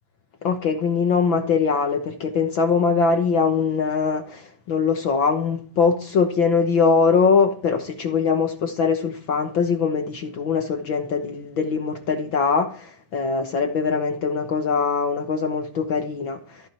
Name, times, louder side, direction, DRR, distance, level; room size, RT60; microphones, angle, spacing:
voice 1, 0.4-16.4, left 5 dB, 70° left, 1.1 m, -22 dB
15.0 x 14.0 x 4.3 m
omnidirectional pair, 4.0 m